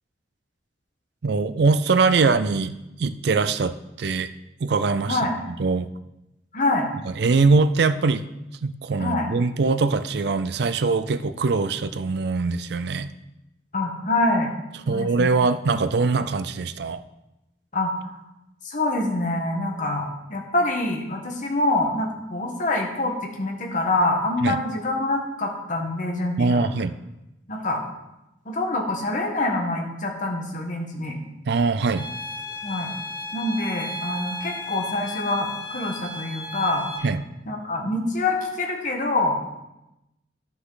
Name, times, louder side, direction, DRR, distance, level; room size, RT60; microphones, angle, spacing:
voice 1, 1.2-4.3 4.6-5.2 5.5-5.9 7.0-8.2 8.6-13.1 14.9-17.0 24.4-24.6 26.4-27.0 31.5-32.1 37.0-37.2, right 4 dB, 65° right, 12 dB, 0.5 m, -22 dB
voice 2, 5.0-5.3 6.5-6.9 9.0-9.3 13.7-14.5 14.9-15.3 17.7-17.9 18.6-26.7 27.5-27.8 28.4-31.2 32.6-32.9 33.3-36.9 37.5-39.4, left 2 dB, 45° left, 1 dB, 1.4 m, -25 dB
sound 1, 32.0-37.0, left 2 dB, 30° right, 2.7 m, -35 dB
11.5 x 5.9 x 3.9 m, 0.91 s
head